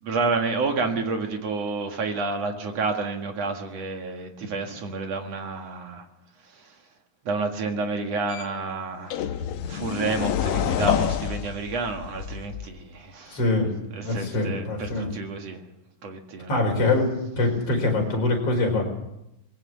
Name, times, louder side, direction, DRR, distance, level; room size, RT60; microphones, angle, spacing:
voice 1, 0.0-6.1 6.4-6.8 7.2-15.6 16.0-16.6, right 3 dB, 55° right, 4 dB, 2.8 m, -30 dB
sound 1, 8.3-8.4 9.1-12.9, left 9 dB, 75° left, 1.4 m, -28 dB
voice 2, 13.3-13.7 14.0-15.1 16.5-17.1 17.4-18.8, left 2 dB, 45° left, 1 dB, 5.7 m, -23 dB
21.0 x 16.5 x 7.6 m, 0.89 s
omnidirectional pair, 3.8 m